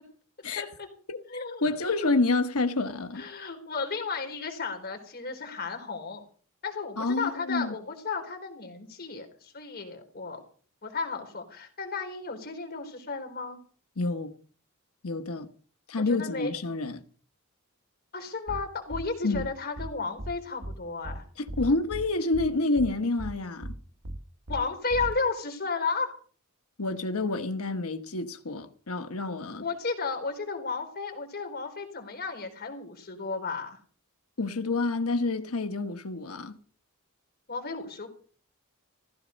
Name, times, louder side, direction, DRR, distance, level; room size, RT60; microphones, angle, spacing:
voice 1, 0.6-0.9 1.3-2.1 3.2-6.3 6.6-10.4 10.8-13.6 16.0-16.5 18.1-21.2 24.5-26.1 29.6-33.8 37.5-38.1, left 4 dB, 45° left, 4.3 m, -33 dB
voice 2, 1.6-3.2 7.0-7.7 14.0-14.3 15.0-15.5 15.9-17.0 19.2-19.5 21.4-23.8 26.8-29.6 34.4-36.6, left 3 dB, 85° left, 1.3 m, -28 dB
sound 1, 18.5-18.6 18.9-19.0 19.3-19.5 19.8-19.9 20.2-20.3 20.6-20.7 21.0-21.2 21.5-22.0 22.3-22.5 22.8-22.9 23.2-23.3 23.6-23.7 24.0-24.2 24.5-24.6 24.9-25.1, right 1 dB, 70° right, 1.4 m, -36 dB
15.5 x 15.5 x 5.3 m
head